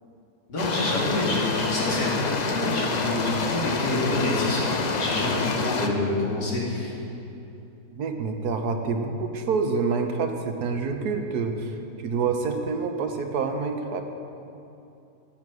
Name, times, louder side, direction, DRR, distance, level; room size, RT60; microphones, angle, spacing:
voice 1, 0.5-6.9, left 2 dB, 80° left, -5 dB, 3.1 m, -27 dB
sound 1, 0.6-5.9, left 4 dB, 60° left, 0.4 m, -28 dB
voice 2, 7.9-14.0, right 4 dB, 75° right, 5 dB, 1.4 m, -27 dB
13.0 x 8.6 x 6.1 m, 2.7 s
omnidirectional pair, 1.7 m